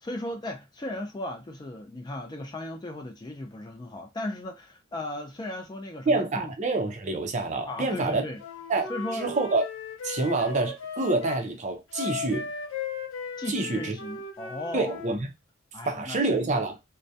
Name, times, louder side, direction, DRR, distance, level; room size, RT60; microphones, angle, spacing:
voice 1, 0.0-6.5 7.7-8.4 8.9-9.3 13.4-15.0 15.7-16.2 16.5-16.6, left 1 dB, 20° left, 0.4 m, -36 dB
voice 2, 6.1-8.2 8.7-9.6 10.0-12.5 13.5-14.0 14.7-15.3 15.8-16.8, right 3 dB, 35° right, 0.5 m, -27 dB
Wind instrument woodwind instrument, 8.4-11.4 11.9-15.2, left 4 dB, 90° left, 0.6 m, -37 dB
2.3 x 2.1 x 2.6 m
head